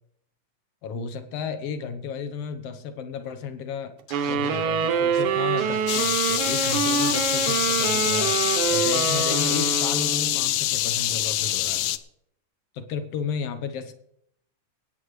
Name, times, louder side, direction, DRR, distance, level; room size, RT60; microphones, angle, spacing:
voice 1, 0.8-4.0 4.3-8.4 8.7-11.9 12.7-13.9, left 6 dB, 65° left, 9 dB, 1.8 m, -33 dB
Scratching (performance technique), 4.1-4.7 5.1-5.2 5.6-6.7 7.0-7.6, left 3 dB, 40° left, 1.5 m, -43 dB
sound 1, 4.1-10.5, right 7 dB, 80° right, 2.4 m, -25 dB
sound 2, 5.9-12.0, left 14 dB, 85° left, 2.1 m, -25 dB
24.0 x 9.4 x 3.2 m, 0.74 s
omnidirectional pair, 3.4 m